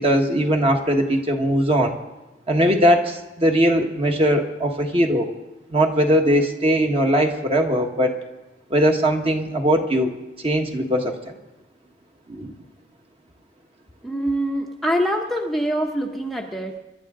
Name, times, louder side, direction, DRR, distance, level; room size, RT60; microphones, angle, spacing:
voice 1, 0.0-2.0 2.5-5.3 5.7-8.2 8.7-10.1 10.4-11.3 12.3-12.5, equal, 30° right, 3 dB, 1.5 m, -20 dB
voice 2, 14.0-16.8, equal, ahead, 0 dB, 0.8 m, -24 dB
26.5 x 11.0 x 3.8 m, 1.0 s
head